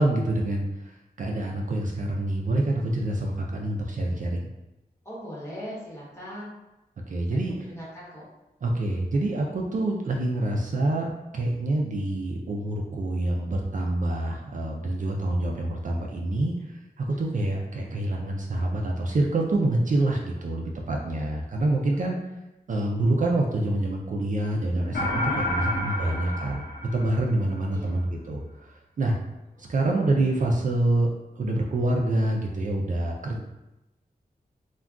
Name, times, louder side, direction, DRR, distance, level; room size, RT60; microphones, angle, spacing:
voice 1, 0.0-4.4 7.1-7.5 8.6-11.1 11.3-16.5 17.0-22.2 22.7-26.6 26.9-28.7 29.0-29.1 29.7-31.1 31.4-33.4, right 1 dB, 55° right, 0 dB, 0.4 m, -26 dB
voice 2, 5.0-6.5 7.3-8.2 17.1-17.5 21.1-21.3 25.9-26.1 27.7-28.0 29.6-29.7, equal, 15° left, -7 dB, 1.1 m, -41 dB
sound 1, 24.9-27.6, left 1 dB, 80° left, 0.5 m, -30 dB
2.3 x 2.2 x 3.5 m, 0.97 s
wide cardioid pair, 115°, 16 cm